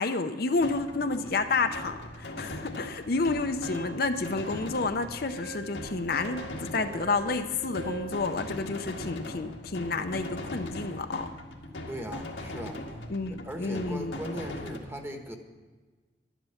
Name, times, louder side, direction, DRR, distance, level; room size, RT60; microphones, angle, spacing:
voice 1, 0.0-11.3 13.1-14.2, left 3 dB, 55° left, 7 dB, 0.7 m, -30 dB
sound 1, 0.6-14.8, left 1 dB, 85° left, 1.7 m, -40 dB
Wind instrument woodwind instrument, 3.6-8.2, right 4 dB, 70° right, 2.0 m, -45 dB
voice 2, 11.9-12.8 13.4-15.4, equal, 15° right, 4 dB, 1.2 m, -38 dB
12.5 x 11.0 x 5.7 m, 1.4 s
head